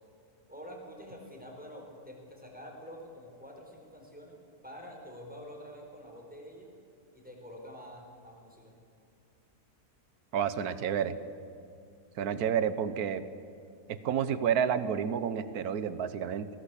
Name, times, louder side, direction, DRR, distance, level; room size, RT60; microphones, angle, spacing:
voice 1, 0.5-4.4 4.6-6.7 7.1-8.7, equal, 5° right, 1 dB, 4.7 m, -47 dB
voice 2, 10.3-11.2 12.2-13.3 13.9-16.5, right 8 dB, 75° right, 13 dB, 1.5 m, -30 dB
22.5 x 18.5 x 8.4 m, 2.5 s
omnidirectional pair, 1.6 m